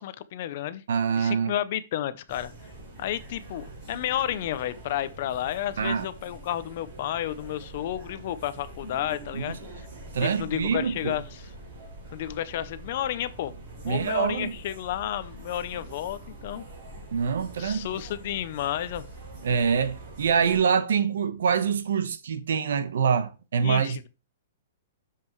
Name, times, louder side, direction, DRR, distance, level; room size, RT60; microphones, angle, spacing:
voice 1, 0.0-0.8 1.2-2.5 3.0-9.6 10.2-11.5 12.1-16.6 17.6-19.1 23.6-24.1, left 12 dB, 35° left, 0.6 m, -31 dB
voice 2, 0.9-1.5 5.8-6.1 9.3-9.6 10.1-11.1 13.8-14.5 17.1-17.9 19.4-24.1, right 6 dB, 70° right, 1.1 m, -25 dB
sound 1, 2.3-20.6, right 2 dB, 30° right, 4.7 m, -44 dB
7.6 x 7.4 x 3.1 m
hypercardioid pair, 180°, 0 cm